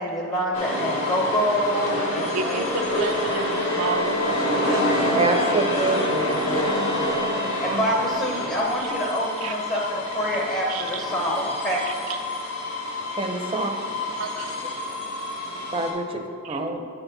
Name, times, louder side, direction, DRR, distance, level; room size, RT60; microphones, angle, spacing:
voice 1, 0.0-2.7 2.9-3.0 6.2-11.8, equal, 20° left, 0.7 m, -27 dB
sound 1, 0.5-15.9, left 1 dB, 85° left, 1.3 m, -28 dB
voice 2, 2.3-5.1 9.4-9.6 10.7-11.0 14.2-14.4 16.5-16.6, right 4 dB, 85° right, 0.6 m, -30 dB
sound 2, 2.6-8.3, left 2 dB, 60° left, 1.3 m, -31 dB
voice 3, 5.1-6.3 7.6-7.8 13.2-13.7 15.7-16.8, right 2 dB, 25° right, 0.5 m, -26 dB
9.3 x 4.5 x 3.9 m
head